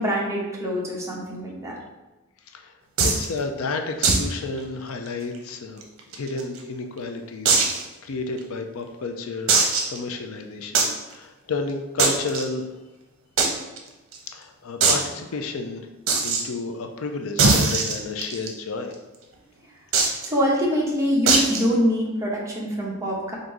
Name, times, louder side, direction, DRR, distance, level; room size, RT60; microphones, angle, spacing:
voice 1, 0.0-1.8 20.2-23.4, equal, 15° right, -4 dB, 0.9 m, -24 dB
voice 2, 3.0-5.9 6.1-12.7 14.3-15.9 16.2-18.9, left 3 dB, 70° left, 5 dB, 0.4 m, -31 dB
sound 1, 3.0-3.3 4.0-4.3 4.6-4.7 5.1-5.2 5.8-6.6 7.4-7.8 8.4-8.5 9.5-10.0 10.7-11.0 12.0-12.4 13.4-13.5 13.8-13.9 14.1-14.2 14.8-15.0 16.1-16.4 17.4-18.5 19.9-20.3 21.3-21.6, right 4 dB, 65° right, 0.8 m, -20 dB
3.8 x 2.6 x 4.7 m, 1.1 s
head